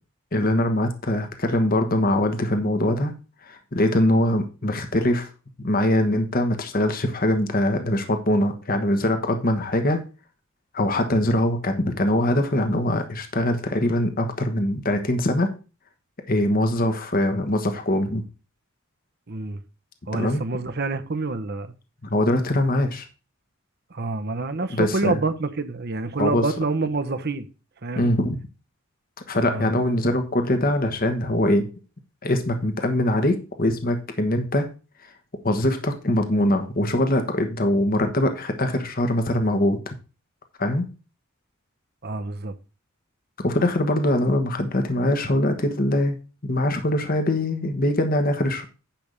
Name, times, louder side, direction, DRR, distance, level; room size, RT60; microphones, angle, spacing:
voice 1, 0.3-3.1 3.4-5.3 5.6-10.0 10.7-15.5 16.3-18.2 20.1-20.4 22.0-23.1 24.7-25.2 26.2-26.4 27.9-28.4 29.3-31.7 32.2-34.7 35.4-39.8 40.6-40.8 43.4-46.2 46.4-48.6, left 1 dB, 45° left, 1.2 m, -22 dB
voice 2, 19.3-19.6 20.1-21.7 23.9-27.5 27.8-28.1 29.4-29.7 42.0-42.5, right 3 dB, 50° right, 0.9 m, -27 dB
10.5 x 3.5 x 6.7 m
head